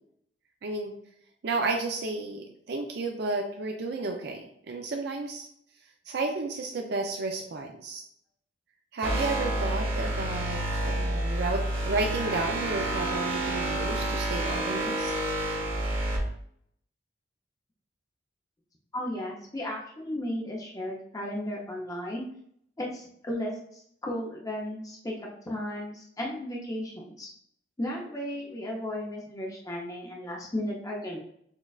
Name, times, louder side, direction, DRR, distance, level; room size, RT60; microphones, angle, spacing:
voice 1, 0.6-0.9 1.4-5.5 6.1-8.0 8.9-15.1, right 3 dB, 60° right, 2 dB, 0.4 m, -32 dB
sound 1, 9.0-16.2, right 1 dB, 30° right, 1.1 m, -29 dB
voice 2, 18.9-22.3 22.8-27.3 27.8-31.2, left 1 dB, 20° left, -2 dB, 0.6 m, -35 dB
6.2 x 2.3 x 2.3 m, 0.69 s
head